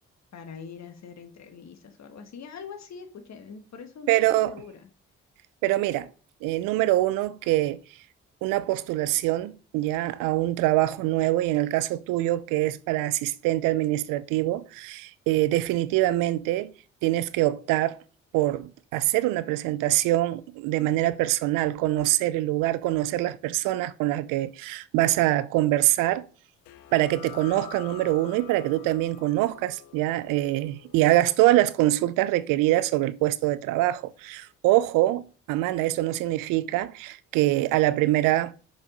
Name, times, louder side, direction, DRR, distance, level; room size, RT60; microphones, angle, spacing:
voice 1, 0.3-4.9, left 6 dB, 55° left, 1.6 m, -43 dB
voice 2, 4.1-4.5 5.6-6.1 6.4-7.8 8.4-16.7 17.0-18.0 18.3-26.2 26.9-35.2 35.5-38.5, right 16 dB, 80° right, 0.6 m, -24 dB
sound 1, 26.6-33.9, left 11 dB, 85° left, 0.7 m, -48 dB
7.2 x 5.0 x 5.1 m
hypercardioid pair, 50°, 32 cm